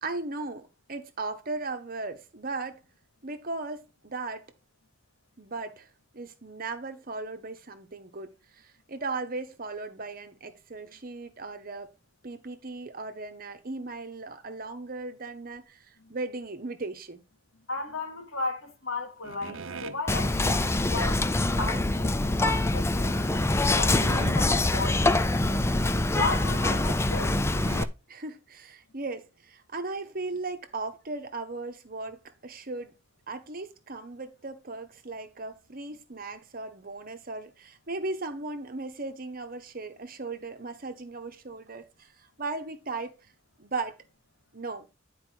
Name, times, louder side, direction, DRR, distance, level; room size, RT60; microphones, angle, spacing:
voice 1, 0.0-2.8 3.2-4.4 5.4-11.9 12.2-17.2 28.1-33.0 33.3-42.1 42.4-43.3 43.6-44.0 44.5-44.9, right 3 dB, 45° right, 1.0 m, -37 dB
voice 2, 17.7-25.6 26.1-27.4, left 3 dB, 70° left, 2.0 m, -35 dB
sound 1, 19.2-20.0 22.5-22.8 23.4-23.5 23.8-24.7 25.2-25.3 25.5-25.7 26.2-26.3 27.1-27.2 27.5-27.9, right 4 dB, 70° right, 0.6 m, -40 dB
Whispering, 20.1-27.8, left 2 dB, 15° left, 0.4 m, -25 dB
10.0 x 4.7 x 4.6 m
head